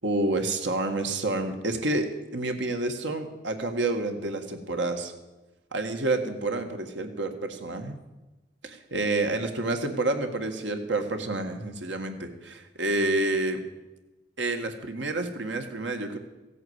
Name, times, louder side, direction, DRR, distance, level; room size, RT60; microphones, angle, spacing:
voice 1, 0.0-5.1 5.7-8.0 8.6-13.6 14.4-16.2, right 2 dB, 90° right, 5 dB, 1.8 m, -29 dB
15.5 x 8.6 x 8.1 m, 1.1 s
head